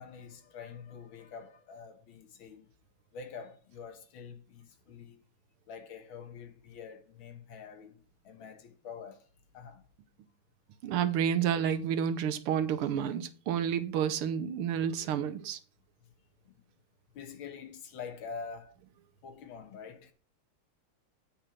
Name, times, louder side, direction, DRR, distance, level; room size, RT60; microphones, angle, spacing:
voice 1, 0.0-2.7 3.1-5.2 5.7-8.0 8.2-9.3 9.5-9.8 16.5-16.6 17.1-18.8 19.2-20.1, left 6 dB, 70° left, 1.9 m, -46 dB
voice 2, 10.8-15.6, right 8 dB, 85° right, 1.7 m, -30 dB
8.8 x 5.3 x 6.0 m
omnidirectional pair, 2.4 m